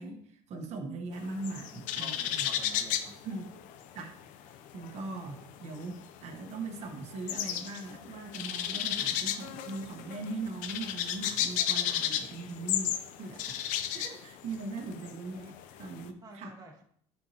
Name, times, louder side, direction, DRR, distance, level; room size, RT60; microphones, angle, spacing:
voice 1, 0.0-2.5 3.2-3.5 3.9-4.1 4.7-13.6 13.9-16.6, right 3 dB, 60° right, 2 dB, 1.4 m, -40 dB
sound 1, 1.1-4.2 4.5-16.0, left 10 dB, 80° left, 0.6 m, -33 dB
voice 2, 1.8-3.2 16.2-16.8, right 2 dB, 30° right, -2 dB, 1.9 m, -50 dB
9.9 x 4.5 x 2.9 m, 0.65 s
cardioid pair, 95°, 13 cm